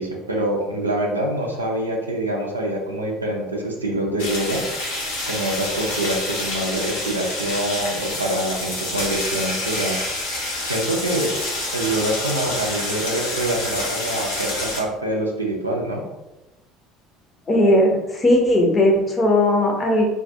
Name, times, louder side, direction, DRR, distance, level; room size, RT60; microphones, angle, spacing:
voice 1, 0.0-4.6 5.3-10.0 10.6-11.3 11.7-16.0, right 1 dB, 85° right, -1 dB, 0.4 m, -25 dB
sound 1, 4.2-14.8, left 2 dB, 65° left, 0.9 m, -28 dB
voice 2, 17.5-20.1, left 1 dB, 25° left, 1 dB, 0.6 m, -17 dB
2.3 x 2.2 x 2.6 m, 1.0 s
figure-of-eight pair, 65°, 0 cm